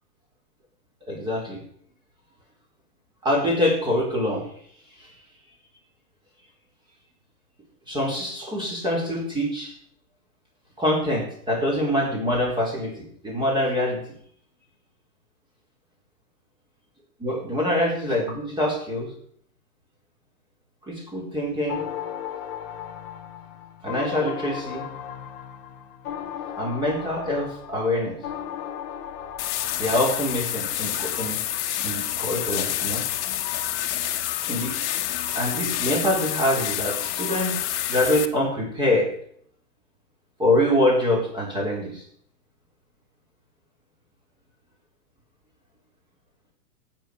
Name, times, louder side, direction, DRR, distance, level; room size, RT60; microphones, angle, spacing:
voice 1, 1.1-1.6 3.2-4.4 7.9-9.7 10.8-14.0 17.2-19.1 20.9-21.8 23.8-24.9 26.6-28.1 29.8-31.4 31.8-33.0 34.5-34.7 35.3-37.6 37.9-39.1 40.4-42.0, left 1 dB, 10° right, -2 dB, 4.2 m, -25 dB
sound 1, 21.7-30.4, left 9 dB, 15° left, 0.4 m, -36 dB
sound 2, 29.4-38.3, left 12 dB, 45° left, 1.2 m, -28 dB
12.5 x 9.1 x 6.6 m, 0.65 s
hypercardioid pair, 150°, 46 cm